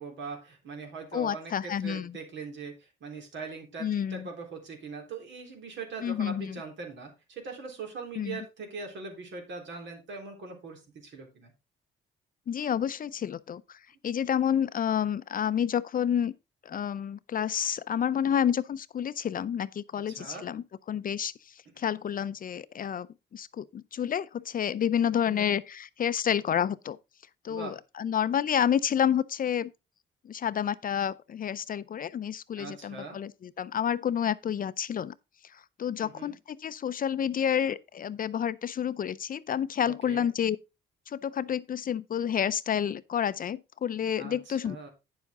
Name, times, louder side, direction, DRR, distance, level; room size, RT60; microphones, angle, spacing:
voice 1, 0.0-11.5 20.1-20.5 25.2-25.5 27.5-27.8 32.6-33.2 36.0-36.4 39.8-40.3 44.2-44.9, right 4 dB, 70° right, 3.8 m, -41 dB
voice 2, 1.1-2.1 3.8-4.3 6.0-6.6 8.2-8.4 12.5-16.3 16.6-21.3 21.8-27.0 27.4-29.7 30.2-35.1 35.5-40.6 41.1-44.9, left 9 dB, 45° left, 0.6 m, -29 dB
9.4 x 7.2 x 3.8 m
cardioid pair, 90°, 20 cm